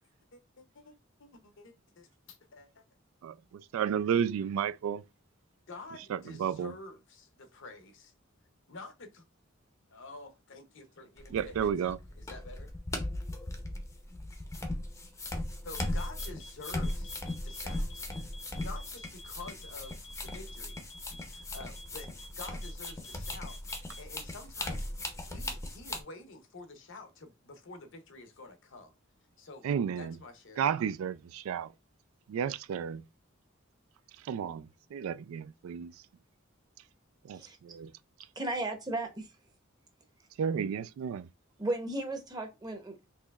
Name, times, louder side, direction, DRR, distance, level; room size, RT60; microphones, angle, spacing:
voice 1, 0.3-0.9 1.2-2.8 5.7-8.1 8.7-9.2 9.9-12.7 15.6-17.1 17.4-18.1 18.6-20.8 21.2-24.9 25.1-28.9 29.4-29.7 30.0-30.6, left 3 dB, 65° left, 0.7 m, -49 dB
voice 2, 3.7-5.0 6.1-6.7 11.3-12.0 29.6-30.1 30.6-31.7 32.3-33.0 34.3-34.6 34.9-35.9 37.3-37.9 40.4-41.3, right 8 dB, 80° right, 0.3 m, -32 dB
sound 1, 11.2-26.0, left 1 dB, 15° left, 0.6 m, -38 dB
sound 2, 15.8-24.1, left 1 dB, 85° left, 1.3 m, -50 dB
voice 3, 38.4-39.3 41.6-43.1, right 2 dB, 20° right, 0.8 m, -35 dB
4.3 x 3.0 x 2.3 m
head